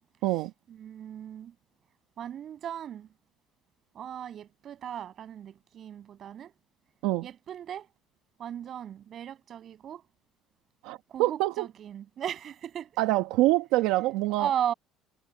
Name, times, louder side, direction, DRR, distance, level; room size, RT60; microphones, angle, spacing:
voice 1, 0.8-1.5 2.2-3.1 4.0-6.5 7.2-7.9 8.4-10.0 11.1-12.9 14.4-14.7, right 9 dB, 45° right, 7.0 m, -36 dB
voice 2, 10.8-11.7 13.0-14.5, right 17 dB, 85° right, 1.4 m, -25 dB
cardioid pair, 125°, 0 cm